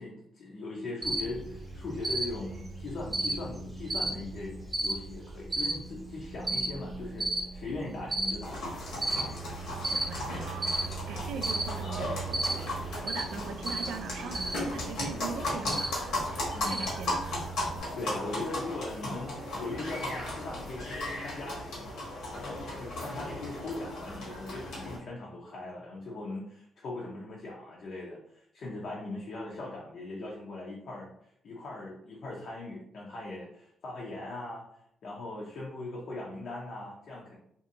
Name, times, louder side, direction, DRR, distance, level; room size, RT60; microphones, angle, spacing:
voice 1, 0.0-9.0 16.5-16.9 17.9-21.9 22.2-31.1 31.4-34.7 35.0-37.4, left 2 dB, 60° left, -3 dB, 0.6 m, -40 dB
Cricket, 1.0-17.8, right 2 dB, 20° right, 0.8 m, -35 dB
sound 1, 8.4-25.0, left 1 dB, 75° left, 1.2 m, -36 dB
voice 2, 9.9-17.5, right 6 dB, 80° right, 8 dB, 0.3 m, -41 dB
2.6 x 2.5 x 2.6 m, 0.72 s
cardioid pair, 90°, 0 cm